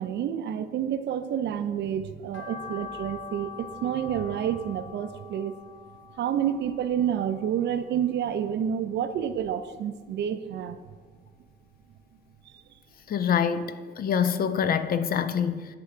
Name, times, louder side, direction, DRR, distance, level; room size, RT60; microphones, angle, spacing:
voice 1, 0.0-5.6 6.2-10.8 12.5-12.6, right 9 dB, 60° right, 0.4 m, -29 dB
sound 1, 2.3-8.6 9.0-10.2 10.5-11.9 12.3-12.4 12.9-13.0 13.2-13.3, left 6 dB, 75° left, 0.8 m, -45 dB
voice 2, 13.1-15.7, left 7 dB, 50° left, 0.4 m, -25 dB
9.4 x 3.4 x 3.6 m
cardioid pair, 90°, 20 cm